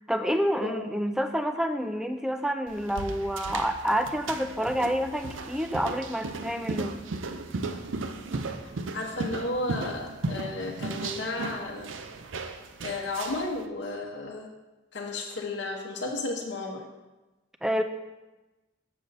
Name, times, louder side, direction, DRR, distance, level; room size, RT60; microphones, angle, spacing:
voice 1, 0.1-7.0 17.6-17.8, equal, 5° right, 7 dB, 0.3 m, -28 dB
sound 1, 2.7-13.6, right 3 dB, 80° right, 0.6 m, -36 dB
voice 2, 8.9-11.9 12.8-14.5 14.9-16.8, left 2 dB, 60° left, -1 dB, 0.9 m, -33 dB
7.6 x 6.8 x 4.0 m, 1.1 s
head